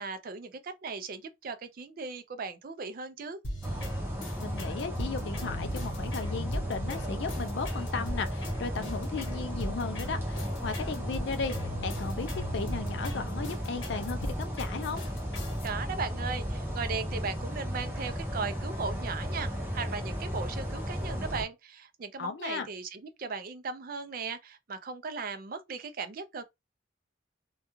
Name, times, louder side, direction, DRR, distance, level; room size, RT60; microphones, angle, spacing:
voice 1, 0.0-3.4 15.6-26.4, right 5 dB, 50° right, 0.4 m, -37 dB
sound 1, 3.4-15.7, equal, 85° left, 0.9 m, -40 dB
sound 2, 3.6-21.4, equal, 10° right, 0.7 m, -34 dB
voice 2, 4.4-15.0 22.2-22.7, left 4 dB, 65° left, 0.4 m, -36 dB
2.3 x 2.2 x 2.9 m
head